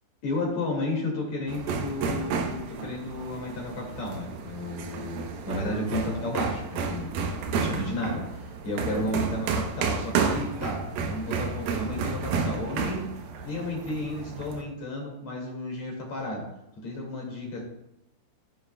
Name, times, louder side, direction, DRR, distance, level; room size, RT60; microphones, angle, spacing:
voice 1, 0.2-7.1 7.5-8.2 8.6-13.1 13.4-16.4 16.8-17.6, left 1 dB, 45° left, -1 dB, 2.6 m, -32 dB
sound 1, 1.5-14.6, right 5 dB, 85° right, 2.1 m, -31 dB
16.5 x 7.5 x 2.2 m, 0.82 s
omnidirectional pair, 5.5 m